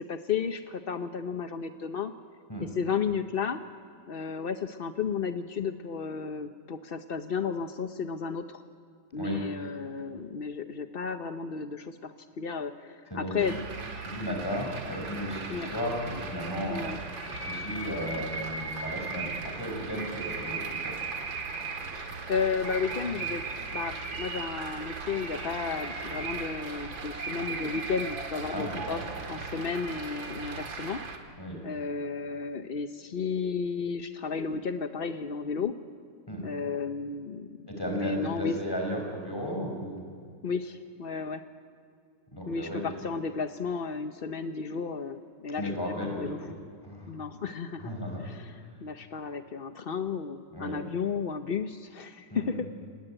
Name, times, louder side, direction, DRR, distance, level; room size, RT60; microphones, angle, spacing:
voice 1, 0.1-2.1 2.6-3.6 4.1-8.6 9.1-13.5 15.5-15.7 16.7-17.0 21.9-23.4 23.7-29.0 29.3-31.0 31.6-35.7 36.4-38.5 40.4-41.4 42.5-45.7 46.0-46.4 47.1-48.0 48.2-52.7, left 5 dB, 50° left, 8 dB, 0.6 m, -33 dB
voice 2, 13.1-13.6 14.1-16.8 17.4-20.9 28.5-29.0 31.4-31.6 36.3-36.4 37.7-40.0 42.3-42.8 45.6-46.5 46.8-47.1 47.8-48.2 50.5-50.8 52.3-52.6, equal, 10° left, 1 dB, 5.7 m, -34 dB
sound 1, 13.4-31.2, right 4 dB, 90° right, 2.8 m, -37 dB
28.0 x 19.0 x 9.0 m, 2.3 s
omnidirectional pair, 2.0 m